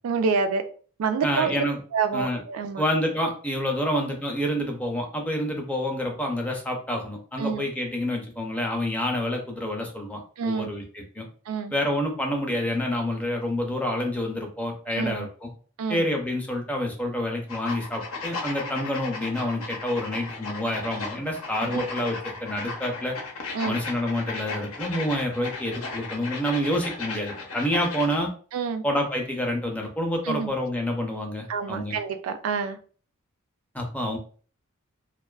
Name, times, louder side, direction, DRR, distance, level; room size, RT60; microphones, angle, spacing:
voice 1, 0.0-0.7 1.0-1.6 1.9-2.8 7.4-7.6 10.4-10.7 11.5-11.7 14.9-15.3 15.8-16.0 21.6-21.8 23.5-23.8 28.5-28.8 30.2-30.5 31.5-32.8, right 5 dB, 75° right, 8 dB, 0.3 m, -27 dB
voice 2, 1.2-1.8 2.1-2.4 2.8-11.3 11.7-15.5 15.9-23.2 23.6-28.3 28.8-31.9 33.7-34.2, left 1 dB, 5° left, 1 dB, 0.5 m, -28 dB
sound 1, 17.5-28.2, left 3 dB, 80° left, 0.7 m, -36 dB
2.4 x 2.3 x 2.2 m, 0.41 s
head